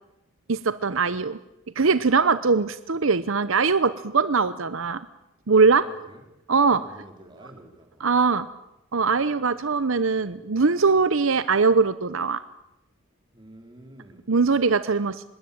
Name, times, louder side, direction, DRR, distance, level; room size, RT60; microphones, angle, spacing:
voice 1, 0.5-1.4 1.8-5.0 5.5-5.9 6.5-6.8 8.0-8.5 8.9-12.4 14.3-15.2, right 4 dB, 70° right, 14 dB, 0.8 m, -21 dB
voice 2, 5.8-6.2 6.6-8.1 13.3-14.3, right 1 dB, 20° right, 3 dB, 4.2 m, -48 dB
25.5 x 21.5 x 8.7 m, 0.90 s
head